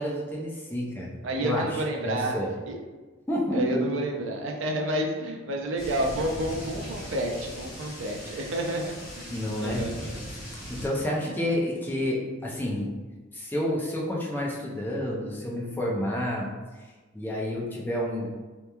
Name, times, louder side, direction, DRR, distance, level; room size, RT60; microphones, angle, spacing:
voice 1, 0.0-1.1 1.4-2.5 3.3-3.8 9.3-9.9 10.7-12.9 13.3-16.5 17.1-18.3, left 1 dB, 10° left, -4 dB, 0.4 m, -29 dB
voice 2, 1.2-2.4 2.7-2.8 3.5-10.3 10.7-10.9, right 1 dB, 70° right, 1 dB, 0.4 m, -30 dB
sound 1, 5.8-10.9, equal, 75° left, 1.1 m, -39 dB
2.9 x 2.2 x 2.2 m, 1.3 s
head